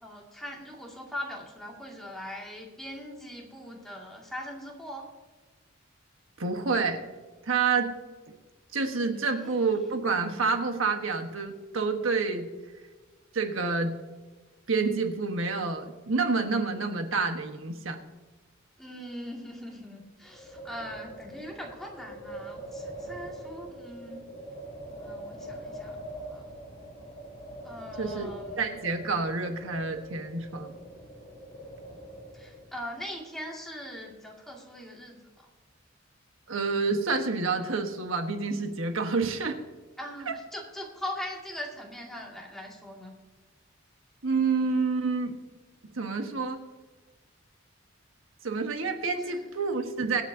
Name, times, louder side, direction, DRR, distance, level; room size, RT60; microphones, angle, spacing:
voice 1, 0.0-5.1 9.2-9.6 18.8-24.3 25.0-26.0 26.3-26.5 27.6-28.7 32.3-35.2 40.0-43.2 49.2-49.4, equal, ahead, -2 dB, 2.2 m, -41 dB
voice 2, 6.4-7.0 7.4-7.9 8.7-12.5 13.3-13.9 14.7-18.0 28.0-30.7 36.5-39.6 40.3-40.4 44.2-45.3 46.0-46.6 48.4-50.2, right 4 dB, 85° right, 5 dB, 1.3 m, -28 dB
Wind, 20.2-32.8, right 1 dB, 30° left, 3.7 m, -43 dB
23.5 x 8.2 x 2.8 m, 1.3 s
head